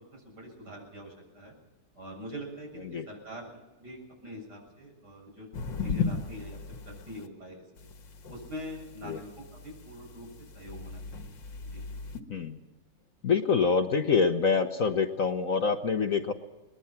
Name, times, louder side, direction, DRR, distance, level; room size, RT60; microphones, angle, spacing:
voice 1, 0.0-1.5 1.9-5.5 5.8-7.9 8.3-11.3 11.6-11.8, equal, 60° right, 0 dB, 8.1 m, -44 dB
sound 1, 5.5-7.3 7.8-12.2, left 5 dB, 80° left, 2.1 m, -37 dB
voice 2, 13.2-16.3, left 5 dB, 50° left, 7 dB, 1.3 m, -26 dB
23.0 x 20.5 x 5.9 m, 1.1 s
omnidirectional pair, 2.0 m